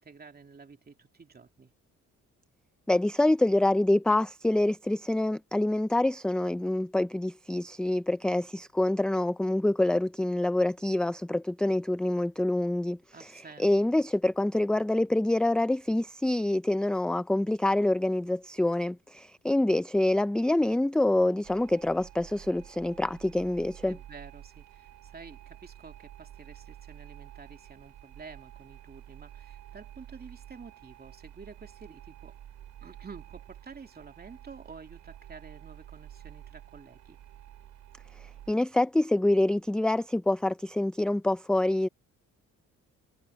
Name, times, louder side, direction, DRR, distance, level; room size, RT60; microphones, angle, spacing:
voice 1, 0.0-1.7 13.1-13.7 23.8-32.4 32.8-37.2, right 5 dB, 30° right, 2.7 m, -49 dB
voice 2, 2.9-24.0 38.2-41.9, left 1 dB, 5° left, 0.4 m, -26 dB
sound 1, 21.4-38.5, right 11 dB, 75° right, 5.4 m, -50 dB
cardioid pair, 90°, 30 cm